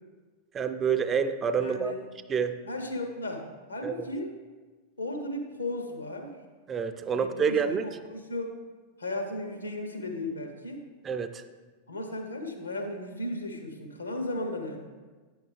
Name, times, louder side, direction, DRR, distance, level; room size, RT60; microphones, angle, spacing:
voice 1, 0.5-1.9 2.3-2.6 3.8-3.9 6.7-7.8 11.0-11.4, right 6 dB, 25° right, 9 dB, 0.4 m, -27 dB
voice 2, 1.6-2.0 2.6-4.4 5.0-6.4 7.1-8.6 9.0-10.8 11.9-14.8, left 1 dB, 80° left, 4 dB, 1.0 m, -35 dB
8.8 x 6.4 x 3.4 m, 1.4 s
figure-of-eight pair, 90°, 0 cm